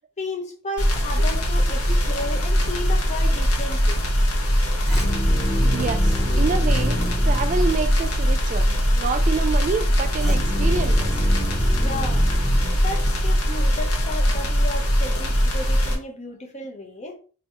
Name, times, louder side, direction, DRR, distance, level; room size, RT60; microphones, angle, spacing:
voice 1, 0.2-4.0 11.8-12.3 12.8-17.2, left 2 dB, 30° left, 0.9 m, -33 dB
sound 1, 0.8-16.0, equal, 70° left, 1.2 m, -21 dB
sound 2, 4.9-8.2 10.2-13.5, equal, ahead, 0.9 m, -28 dB
voice 2, 5.6-7.0 7.2-11.2, right 5 dB, 35° right, 0.3 m, -28 dB
3.1 x 2.7 x 4.3 m
head